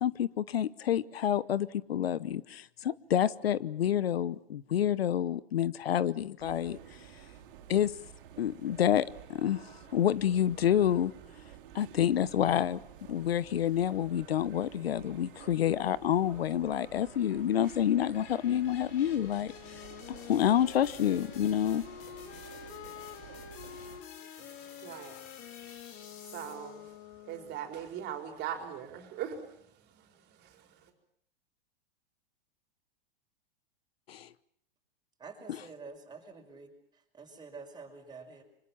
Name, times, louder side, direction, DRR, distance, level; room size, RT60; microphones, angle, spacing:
voice 1, 0.0-6.8 7.7-7.9 8.4-9.0 9.3-11.1 11.7-12.8 13.1-19.5 20.3-21.8 34.1-34.3, left 10 dB, 90° left, 19 dB, 1.0 m, -28 dB
sound 1, 6.4-24.0, right 10 dB, 60° right, 3.9 m, -51 dB
sound 2, 15.8-26.9, left 7 dB, 60° left, 5.7 m, -54 dB
Wind instrument woodwind instrument, 19.4-27.8, left 11 dB, 45° left, 2.5 m, -48 dB
voice 2, 24.4-30.9, right 9 dB, 35° right, 5 dB, 4.7 m, -42 dB
voice 3, 35.2-38.4, right 4 dB, 15° right, 3 dB, 5.7 m, -48 dB
27.0 x 25.0 x 7.3 m, 0.67 s
hypercardioid pair, 130°, 29 cm